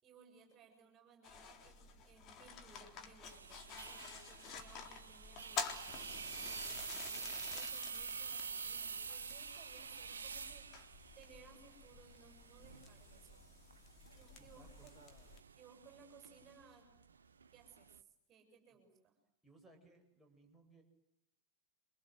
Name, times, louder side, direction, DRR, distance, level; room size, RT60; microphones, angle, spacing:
voice 1, 0.0-6.1 6.4-10.7 11.1-13.4 14.1-15.0 15.6-16.9 17.5-19.1, right 5 dB, 30° right, 4 dB, 7.6 m, -62 dB
sound 1, 1.2-15.4, left 5 dB, 35° left, 3.7 m, -50 dB
sound 2, 3.3-18.0, right 5 dB, 70° right, 1.0 m, -48 dB
voice 2, 7.0-7.5 14.0-15.5 19.4-20.8, right 2 dB, ahead, -1 dB, 7.9 m, -65 dB
28.5 x 26.0 x 7.9 m, 0.81 s
figure-of-eight pair, 90°, 0 cm